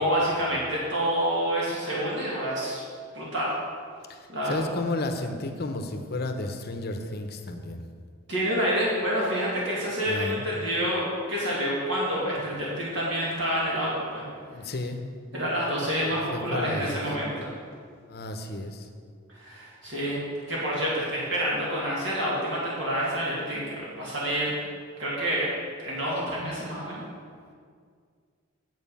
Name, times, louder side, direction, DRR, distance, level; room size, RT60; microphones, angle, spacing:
voice 1, 0.0-2.8 3.1-3.5 4.3-4.6 8.3-11.0 11.3-14.2 15.3-17.5 19.4-20.2 20.5-24.5 25.0-25.5 25.8-27.0, equal, 60° right, -6 dB, 2.4 m, -28 dB
voice 2, 4.1-7.8 10.1-10.5 14.5-15.0 16.1-17.0 18.1-18.9, left 2 dB, 50° left, 6 dB, 0.8 m, -33 dB
9.3 x 8.0 x 5.5 m, 2.1 s
head